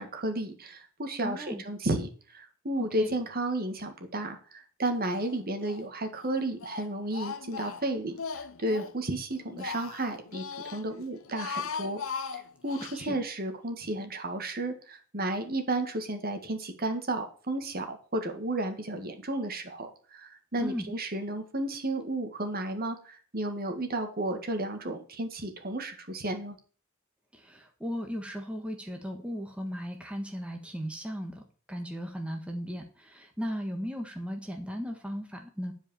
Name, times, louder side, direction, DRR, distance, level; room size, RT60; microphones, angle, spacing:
voice 1, 0.0-12.0 12.3-26.6, right 1 dB, 45° right, 6 dB, 1.8 m, -33 dB
voice 2, 1.2-1.6 3.0-3.1 12.9-13.2 20.6-20.9 27.3-31.4 31.7-35.7, equal, 5° right, 3 dB, 1.4 m, -36 dB
Speech, 5.1-5.8 6.1-9.0 9.3-10.8 11.2-13.0, left 5 dB, 75° left, 0.8 m, -39 dB
11.0 x 5.1 x 7.0 m, 0.40 s
head